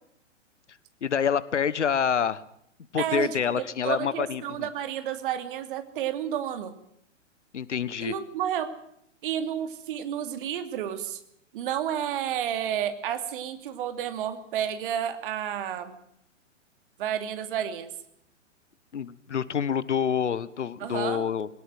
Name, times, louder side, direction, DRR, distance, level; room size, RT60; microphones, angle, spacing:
voice 1, 1.0-2.4 2.9-4.7 7.5-8.1 18.9-21.5, left 7 dB, 70° left, 18 dB, 1.4 m, -27 dB
voice 2, 3.0-6.7 8.0-8.7 9.2-11.2 11.5-16.0 17.0-17.9 20.8-21.3, right 10 dB, 45° right, 9 dB, 2.8 m, -31 dB
21.0 x 18.5 x 7.7 m, 0.71 s
figure-of-eight pair, 110°, 37 cm